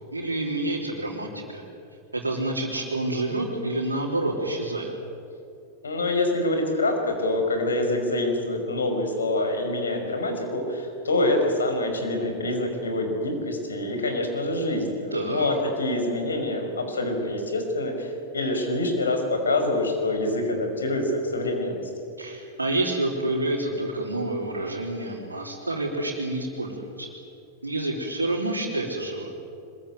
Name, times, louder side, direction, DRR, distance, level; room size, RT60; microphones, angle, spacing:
voice 1, 0.1-1.6 2.1-4.9 15.1-15.5 22.2-27.1 27.6-29.3, right 2 dB, 80° right, -4 dB, 3.6 m, -28 dB
voice 2, 5.8-21.9, left 2 dB, 75° left, 4 dB, 5.4 m, -26 dB
25.5 x 22.0 x 9.3 m, 2.6 s
figure-of-eight pair, 90°, 0 cm